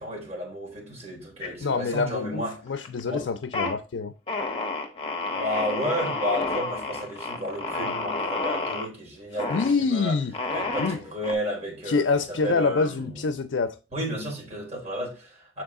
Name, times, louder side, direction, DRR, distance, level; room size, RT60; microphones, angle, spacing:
voice 1, 0.0-2.5 3.0-3.2 5.3-10.2 10.5-13.3 13.9-15.6, equal, 35° right, 3.7 m, -32 dB
sound 1, 1.4-2.1 2.5-3.0 3.4-3.7 4.3-8.9 9.4-9.7 10.3-11.3, left 3 dB, 30° left, 1.0 m, -30 dB
voice 2, 1.6-4.1 9.5-10.4 10.8-11.0 11.9-13.8, left 4 dB, 85° left, 0.5 m, -26 dB
6.8 x 4.7 x 3.6 m
head